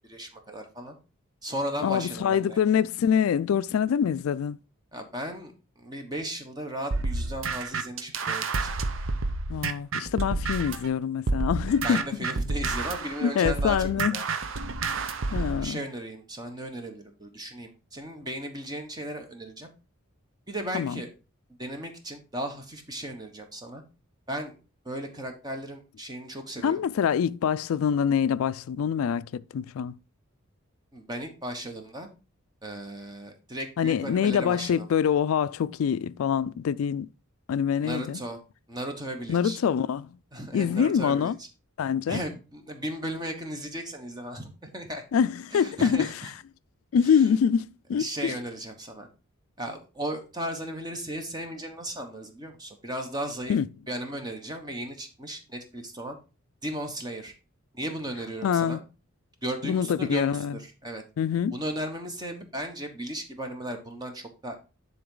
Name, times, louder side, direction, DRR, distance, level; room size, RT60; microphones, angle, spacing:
voice 1, 0.1-1.0 1.4-2.6 4.9-8.7 11.8-14.3 15.4-19.7 20.5-21.1 21.6-23.8 24.3-24.5 24.8-26.8 30.9-32.1 32.6-34.9 37.8-38.4 38.7-39.6 40.3-41.3 42.1-45.0 45.5-46.3 47.1-47.4 48.0-49.1 49.6-53.6 53.9-56.2 56.6-57.3 57.7-58.8 59.4-61.0 61.5-64.5, right 1 dB, 20° right, 1.2 m, -36 dB
voice 2, 1.8-4.6 9.5-12.0 13.2-14.2 15.3-15.8 20.7-21.0 26.6-29.9 33.8-37.1 37.5-38.2 39.3-40.1 40.5-41.4 41.8-42.2 45.1-46.1 46.9-48.3 53.5-53.7 58.4-58.8 59.6-60.6 61.2-61.6, left 7 dB, 80° left, 0.3 m, -25 dB
sound 1, 6.9-10.9 11.3-15.6, right 3 dB, 65° right, 0.7 m, -29 dB
10.0 x 4.0 x 3.8 m
head